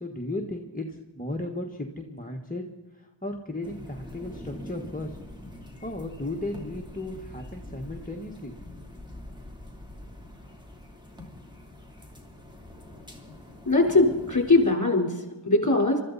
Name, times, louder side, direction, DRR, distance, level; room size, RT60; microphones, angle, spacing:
voice 1, 0.0-2.6 2.9-5.2 5.8-8.6, left 2 dB, 15° left, 1 dB, 1.3 m, -35 dB
sound 1, 3.6-14.7, left 1 dB, 10° right, 3.3 m, -44 dB
voice 2, 13.7-16.0, left 2 dB, 35° left, 2 dB, 3.9 m, -21 dB
24.0 x 13.5 x 4.1 m, 1.2 s
wide cardioid pair, 50°, 48 cm